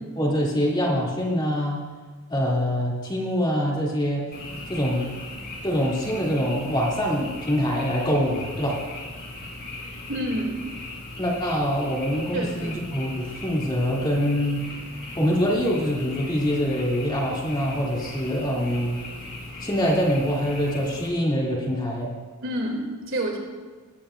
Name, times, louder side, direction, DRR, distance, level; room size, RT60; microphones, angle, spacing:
voice 1, 0.2-1.8 2.3-4.2 4.7-5.1 5.6-8.8 11.2-14.7 15.2-19.0 19.6-22.1, equal, 20° left, -3 dB, 2.7 m, -24 dB
Frog, 4.3-21.1, left 2 dB, 45° left, 3.9 m, -38 dB
voice 2, 10.1-10.6 12.3-12.8 22.4-23.4, right 1 dB, 65° right, 0 dB, 2.8 m, -28 dB
19.5 x 15.5 x 2.6 m, 1.4 s
head